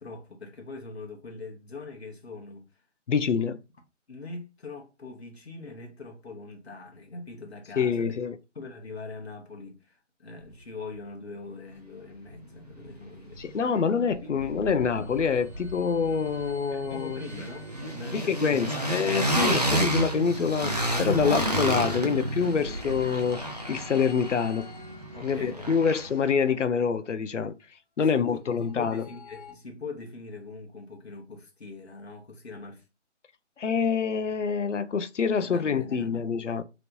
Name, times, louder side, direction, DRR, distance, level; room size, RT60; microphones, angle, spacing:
voice 1, 0.0-2.6 4.1-8.2 8.5-13.4 14.2-14.5 16.7-19.1 25.1-25.9 28.0-28.4 28.8-32.8 35.5-36.2, left 3 dB, 60° left, 1.1 m, -42 dB
voice 2, 3.1-3.6 7.8-8.4 13.4-17.2 18.1-23.4 23.7-24.7 25.2-27.5 28.0-29.0 33.6-36.6, left 6 dB, 75° left, 0.5 m, -26 dB
sound 1, 12.3-12.4 12.7-13.8 14.1-26.3, right 1 dB, 35° right, 0.4 m, -31 dB
sound 2, 14.8-18.5 21.4-25.8 28.3-29.5, left 2 dB, 5° left, 1.6 m, -50 dB
3.2 x 2.9 x 2.5 m
figure-of-eight pair, 160°, 36 cm